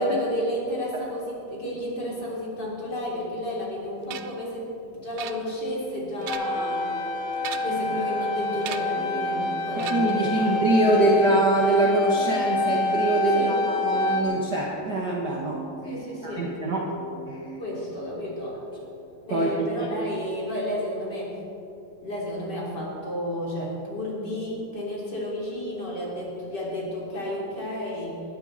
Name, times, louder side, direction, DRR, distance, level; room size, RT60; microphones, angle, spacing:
voice 1, 0.0-6.9 7.5-10.6 10.9-11.2 13.3-13.6 15.9-16.5 17.6-18.6 19.2-21.4 22.0-28.2, left 1 dB, 30° left, -5 dB, 3.6 m, -32 dB
sound 1, 4.1-4.4 5.2-5.8 6.1-6.7 7.4-7.9 8.6-9.0 9.8-10.3, right 11 dB, 90° right, 1.6 m, -38 dB
sound 2, 5.7-20.2, right 2 dB, 20° right, 3.5 m, -43 dB
sound 3, 6.3-14.2, left 2 dB, 85° left, 3.0 m, -27 dB
voice 2, 9.7-16.9 17.3-17.4 19.3-19.9, right 2 dB, 60° right, -2 dB, 1.1 m, -24 dB
20.5 x 13.0 x 4.1 m, 2.9 s
omnidirectional pair, 4.1 m